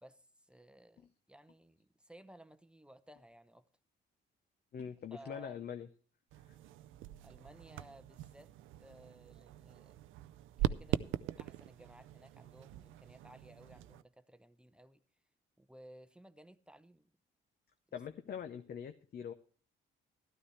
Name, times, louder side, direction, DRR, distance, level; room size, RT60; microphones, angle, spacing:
voice 1, 0.0-3.7 5.1-5.6 7.2-8.5 8.8-10.0 10.6-15.0 15.6-17.1, right 1 dB, 5° right, 0.7 m, -58 dB
voice 2, 4.7-5.9 6.5-6.6 17.9-19.3, left 8 dB, 55° left, 0.8 m, -43 dB
sound 1, 6.3-14.0, right 13 dB, 90° right, 0.5 m, -41 dB
13.0 x 12.5 x 3.2 m
cardioid pair, 90°, 20 cm